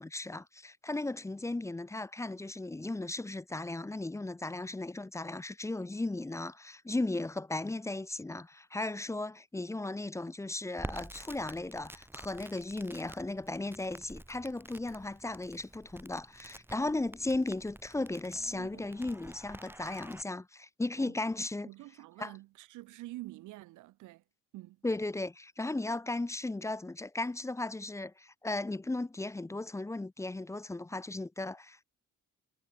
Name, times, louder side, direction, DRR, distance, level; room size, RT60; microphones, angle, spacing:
voice 1, 0.0-21.7 22.2-22.3 24.8-31.9, left 2 dB, 10° left, 0.6 m, -36 dB
Crackle, 10.8-20.2, right 1 dB, 5° right, 2.1 m, -49 dB
voice 2, 18.3-18.9 21.0-21.1 21.6-24.2 24.5-24.8, right 18 dB, 90° right, 0.9 m, -47 dB
cardioid pair, 90°, 30 cm